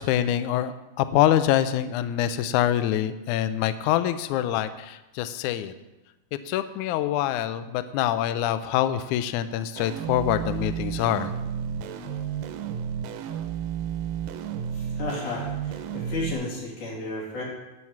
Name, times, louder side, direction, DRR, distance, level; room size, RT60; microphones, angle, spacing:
voice 1, 0.0-5.7 6.5-11.3, left 11 dB, 90° left, 11 dB, 1.7 m, -25 dB
sound 1, 9.8-16.3, right 8 dB, 80° right, 2.2 m, -32 dB
voice 2, 14.7-17.4, left 2 dB, 60° left, -4 dB, 4.1 m, -33 dB
12.0 x 4.7 x 7.2 m, 1.0 s
omnidirectional pair, 4.1 m